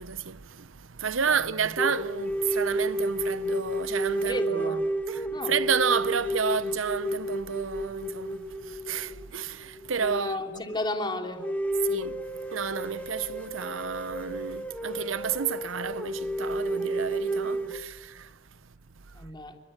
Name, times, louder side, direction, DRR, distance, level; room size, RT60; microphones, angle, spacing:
voice 1, 0.0-4.8 5.1-10.6 11.8-18.4, right 6 dB, 85° right, 0.9 m, -31 dB
voice 2, 1.3-1.8 4.2-4.9 5.3-5.5 10.0-11.5 17.4-17.7 19.1-19.6, left 1 dB, 20° left, 3.2 m, -33 dB
sound 1, 1.8-10.4 10.8-10.9 11.4-17.8, right 1 dB, 5° left, 1.4 m, -31 dB
29.0 x 25.0 x 8.0 m
head